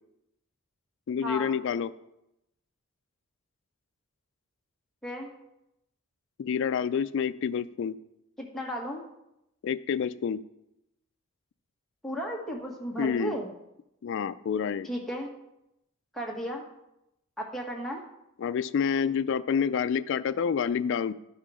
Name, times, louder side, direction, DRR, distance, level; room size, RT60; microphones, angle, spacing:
voice 1, 1.1-1.9 6.4-8.0 9.6-10.4 13.0-13.4 14.0-14.9 18.4-21.1, left 7 dB, 65° left, 12 dB, 0.3 m, -28 dB
voice 2, 8.4-9.0 12.0-13.5 14.8-15.3 16.1-16.6 17.4-18.0, equal, ahead, -2 dB, 1.5 m, -34 dB
11.0 x 5.6 x 4.9 m, 0.86 s
head